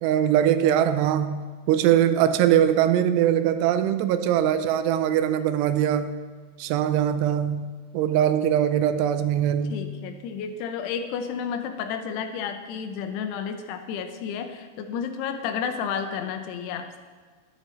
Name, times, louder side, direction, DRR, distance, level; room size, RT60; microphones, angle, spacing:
voice 1, 0.0-6.1 6.6-7.7 7.9-9.8, right 10 dB, 85° right, 11 dB, 2.7 m, -22 dB
voice 2, 9.7-17.0, left 7 dB, 85° left, 7 dB, 2.8 m, -31 dB
11.5 x 10.0 x 3.1 m, 1.4 s
omnidirectional pair, 4.8 m